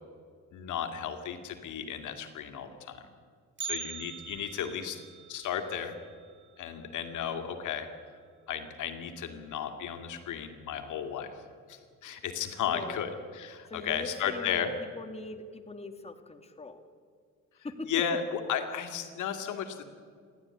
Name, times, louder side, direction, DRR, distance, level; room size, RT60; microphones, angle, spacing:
voice 1, 0.5-3.0 3.6-5.0 5.3-5.9 6.6-7.9 8.5-11.3 11.7-13.1 13.3-14.7 17.9-19.8, left 8 dB, 80° left, 6 dB, 2.3 m, -34 dB
Bell, 3.6-7.7 8.0-8.1 8.5-8.6 9.4-9.5 10.3-10.6 10.9-11.0, right 8 dB, 40° right, 0.7 m, -44 dB
voice 2, 4.6-5.1 12.1-12.2 12.7-13.1 13.6-16.9 17.6-17.9, left 2 dB, 20° left, 7 dB, 2.0 m, -42 dB
29.0 x 12.0 x 9.8 m, 2.1 s
cardioid pair, 90°, 30 cm